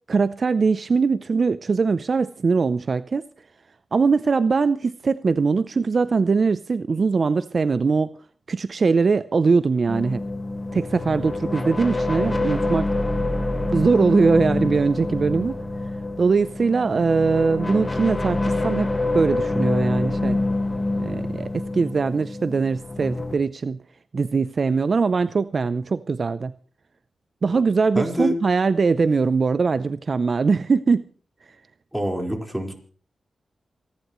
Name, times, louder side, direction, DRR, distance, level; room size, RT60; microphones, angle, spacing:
voice 1, 0.1-3.2 3.9-8.2 8.5-10.2 10.7-12.9 13.7-15.5 16.2-20.4 21.0-23.8 24.1-26.5 27.4-31.1, right 4 dB, 55° right, 14 dB, 0.6 m, -21 dB
sound 1, 9.9-23.4, left 2 dB, 30° left, 1.8 m, -26 dB
voice 2, 27.9-28.3 31.9-32.7, equal, 5° right, 2 dB, 4.5 m, -25 dB
28.0 x 11.5 x 3.1 m, 0.44 s
cardioid pair, 65°, 0 cm